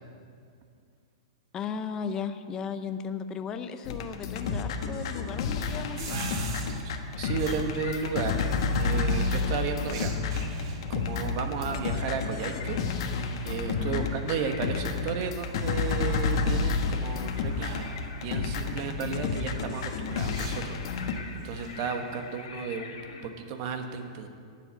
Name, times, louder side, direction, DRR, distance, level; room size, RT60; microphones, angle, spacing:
voice 1, 1.5-6.4 13.8-14.1, left 6 dB, 20° left, 9 dB, 0.7 m, -36 dB
sound 1, 3.9-21.1, left 4 dB, 55° left, 1.3 m, -30 dB
sound 2, 6.0-22.4, right 3 dB, 55° right, 2.2 m, -45 dB
voice 2, 6.8-8.5 8.8-10.1 10.9-13.0 13.4-22.9 23.2-24.3, right 5 dB, 40° right, 6 dB, 1.3 m, -34 dB
sound 3, 7.1-9.2 9.5-11.2 11.6-23.3, left 5 dB, 80° left, 2.2 m, -47 dB
12.5 x 7.6 x 9.4 m, 2.2 s
supercardioid pair, 160°, 3 cm